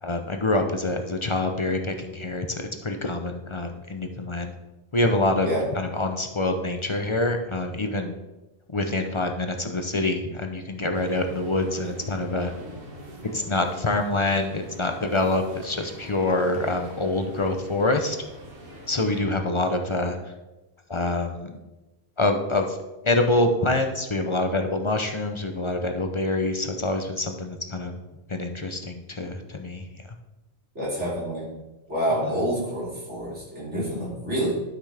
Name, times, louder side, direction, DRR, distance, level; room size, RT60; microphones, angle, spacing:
voice 1, 0.0-4.5 4.9-5.5 5.8-8.1 8.7-12.5 13.3-18.2 18.9-20.2 20.9-21.6 22.2-22.8 23.0-27.9 28.3-29.8 32.2-32.3, left 2 dB, 35° left, 5 dB, 0.6 m, -26 dB
sound 1, 10.9-19.2, equal, 55° right, 1.6 m, -44 dB
voice 2, 30.8-31.4 31.9-34.5, right 1 dB, 90° right, -7 dB, 3.7 m, -27 dB
12.0 x 5.9 x 3.4 m, 1.0 s
omnidirectional pair, 1.2 m